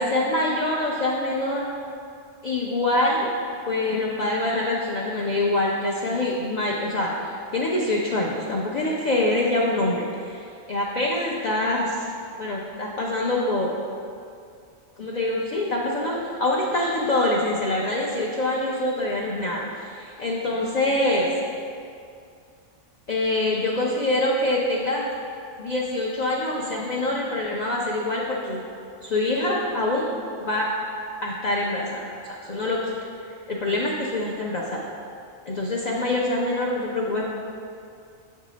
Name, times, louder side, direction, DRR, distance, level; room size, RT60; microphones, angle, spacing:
voice 1, 0.0-1.7 2.4-3.3 3.7-12.1 12.4-13.7 15.0-21.3 23.1-25.1 25.6-28.6 29.0-30.1 30.4-30.7 31.2-32.1 32.5-32.9 33.5-34.9 35.5-37.2, left 1 dB, 50° left, -3 dB, 0.5 m, -25 dB
7.2 x 2.8 x 4.9 m, 2.4 s
omnidirectional pair, 1.3 m